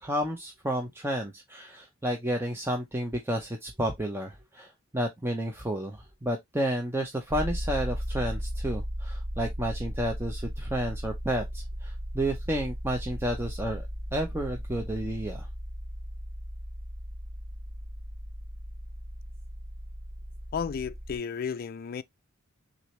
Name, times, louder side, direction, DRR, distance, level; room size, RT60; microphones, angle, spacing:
voice 1, 0.0-15.5, right 1 dB, 10° right, 0.7 m, -31 dB
sound 1, 7.3-21.2, equal, 70° right, 1.2 m, -36 dB
voice 2, 20.5-22.0, left 6 dB, 45° left, 0.4 m, -33 dB
6.1 x 2.6 x 3.1 m
head